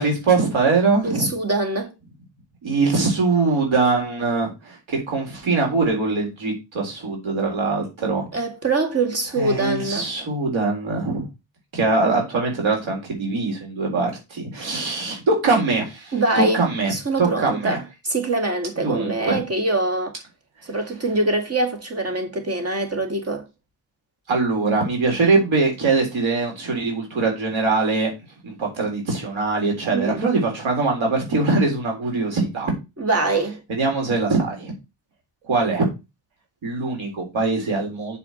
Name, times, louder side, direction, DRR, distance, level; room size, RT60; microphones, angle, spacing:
voice 1, 0.0-1.3 2.6-8.3 9.4-11.2 11.7-16.9 17.2-17.8 18.8-19.4 24.3-28.1 28.4-32.7 33.8-34.7 35.4-35.9 36.6-38.2, right 3 dB, 90° right, 3.8 m, -22 dB
voice 2, 1.0-1.9 8.3-10.1 16.1-16.6 16.9-20.1 20.6-23.5 29.9-30.3 33.0-33.6, right 2 dB, 30° right, 2.2 m, -24 dB
6.9 x 4.9 x 6.2 m
wide cardioid pair, 130°, 45 cm